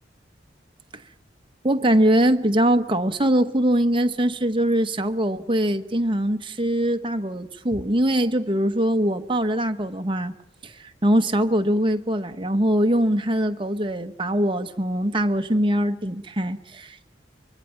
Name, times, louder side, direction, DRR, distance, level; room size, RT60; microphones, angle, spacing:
voice 1, 1.6-10.3 10.6-17.1, right 1 dB, 30° right, 1.1 m, -22 dB
25.0 x 23.5 x 5.8 m
head